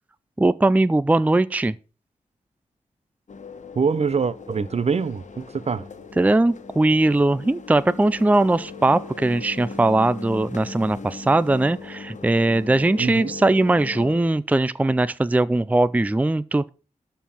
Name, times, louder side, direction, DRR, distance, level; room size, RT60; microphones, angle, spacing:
voice 1, 0.4-1.8 6.2-16.7, right 2 dB, 10° right, 0.4 m, -20 dB
sound 1, 3.3-14.2, left 4 dB, 60° left, 1.4 m, -39 dB
voice 2, 3.7-5.9 13.0-13.3, right 5 dB, 50° right, 0.8 m, -24 dB
12.5 x 4.6 x 7.5 m
cardioid pair, 70°, 14 cm